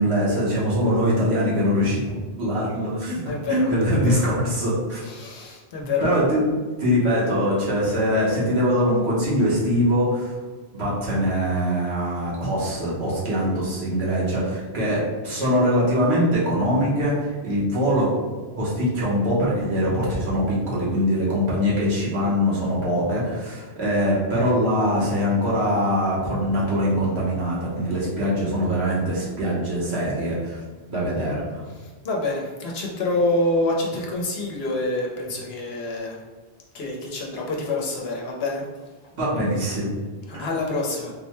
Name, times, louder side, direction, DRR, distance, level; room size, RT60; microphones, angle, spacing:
voice 1, 0.0-3.2 3.5-5.0 6.0-6.5 6.8-10.3 10.7-18.1 18.6-30.6 30.9-31.6 39.2-39.8 40.3-40.4, equal, 80° right, -6 dB, 1.3 m, -22 dB
voice 2, 3.2-4.2 5.0-6.1 32.0-36.2 36.7-38.6 40.4-41.1, left 2 dB, 70° left, -1 dB, 1.0 m, -26 dB
3.9 x 2.2 x 3.0 m, 1.4 s
omnidirectional pair, 1.1 m